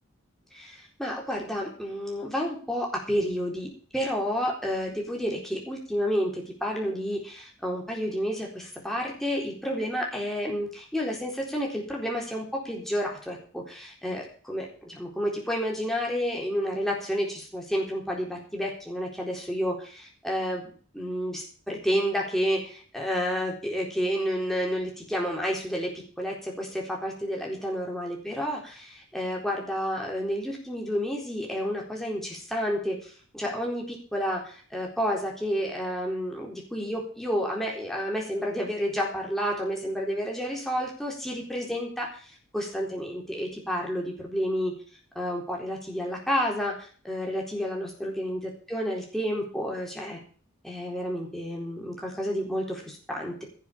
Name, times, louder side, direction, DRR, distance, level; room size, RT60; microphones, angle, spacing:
voice 1, 0.5-3.7 3.9-25.9 26.2-44.7 45.1-50.2 50.6-53.4, equal, ahead, -2 dB, 4.1 m, -30 dB
17.0 x 7.1 x 7.0 m, 0.43 s
head